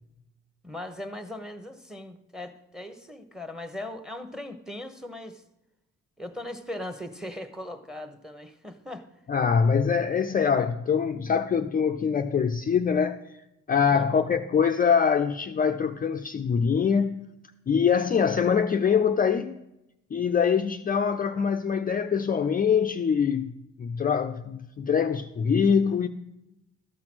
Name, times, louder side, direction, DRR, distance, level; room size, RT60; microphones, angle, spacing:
voice 1, 0.6-5.4 6.2-9.1 13.9-14.2, left 1 dB, ahead, 1.1 m, -39 dB
voice 2, 9.3-13.2 13.7-17.2 17.7-19.5 20.1-26.1, left 6 dB, 30° left, 0.5 m, -24 dB
13.0 x 5.9 x 6.2 m
cardioid pair, 90°, 30 cm